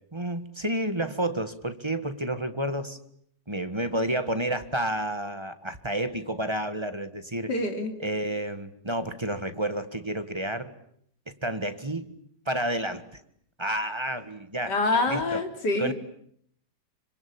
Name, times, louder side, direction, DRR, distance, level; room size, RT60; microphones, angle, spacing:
voice 1, 0.1-3.0 3.5-7.5 8.0-10.7 11.3-12.1 12.5-13.0 13.6-14.8 15.1-15.4 15.8-15.9, right 1 dB, 15° right, 9 dB, 1.5 m, -30 dB
voice 2, 7.5-7.9 14.7-15.9, left 2 dB, 70° left, 5 dB, 3.9 m, -26 dB
26.0 x 26.0 x 8.7 m, 0.68 s
omnidirectional pair, 1.9 m